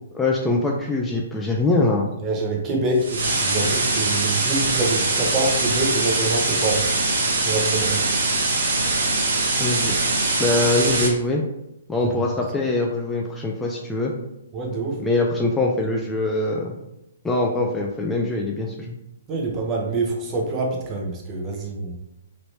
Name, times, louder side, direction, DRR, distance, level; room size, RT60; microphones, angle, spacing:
voice 1, 0.1-2.1 9.6-10.0 10.4-11.4 11.9-14.1 15.0-16.8 17.2-19.0, left 2 dB, 10° left, -1 dB, 0.4 m, -23 dB
voice 2, 2.2-6.9 7.4-8.1 12.0-12.1 14.5-15.0 19.3-22.0, right 2 dB, 25° right, 0 dB, 0.8 m, -26 dB
sound 1, 3.0-11.1, right 3 dB, 65° right, 0.8 m, -22 dB
3.1 x 2.9 x 2.7 m, 0.88 s
hypercardioid pair, 130°, 0 cm